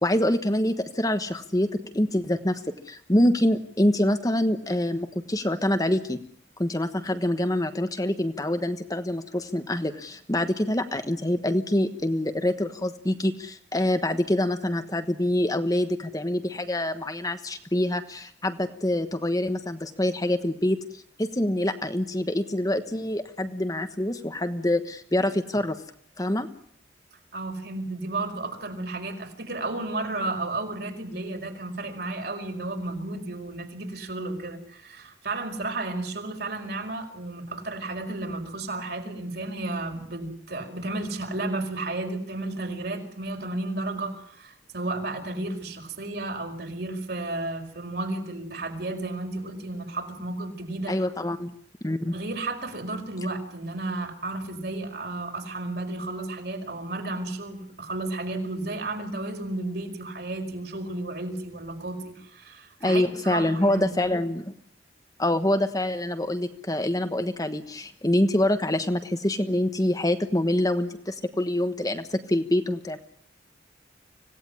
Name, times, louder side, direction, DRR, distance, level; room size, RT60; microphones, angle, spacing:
voice 1, 0.0-1.7 1.9-2.6 2.9-6.2 6.6-25.8 26.2-26.5 50.9-51.5 51.8-52.1 62.8-64.5 65.2-73.0, left 1 dB, 20° left, 8 dB, 1.2 m, -25 dB
voice 2, 27.3-51.0 52.1-64.2, right 2 dB, 60° right, 4 dB, 5.1 m, -33 dB
25.5 x 17.5 x 10.0 m, 0.64 s
head